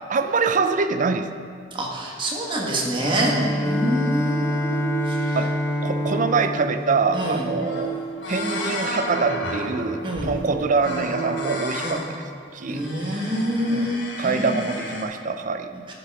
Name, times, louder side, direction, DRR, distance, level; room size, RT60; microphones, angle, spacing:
voice 1, 0.1-1.3 3.2-3.6 5.3-5.5 5.8-7.9 8.3-12.0 12.5-13.3 13.7-15.7, right 4 dB, 45° right, 8 dB, 0.5 m, -25 dB
voice 2, 1.7-3.3 3.6-4.8 5.1-5.4 7.1-7.5 10.0-10.3 11.8-12.0 12.7-14.5 15.9-16.0, right 1 dB, 30° right, -2 dB, 1.5 m, -26 dB
Bowed string instrument, 3.0-8.1, left 1 dB, 15° left, 0.4 m, -27 dB
sound 1, 3.3-11.7, right 6 dB, 85° right, 1.0 m, -34 dB
sound 2, 7.3-7.4 7.6-7.9 8.2-10.4 10.8-12.1 12.6-15.0, left 2 dB, 75° left, 1.3 m, -32 dB
12.0 x 5.8 x 4.7 m, 2.4 s
head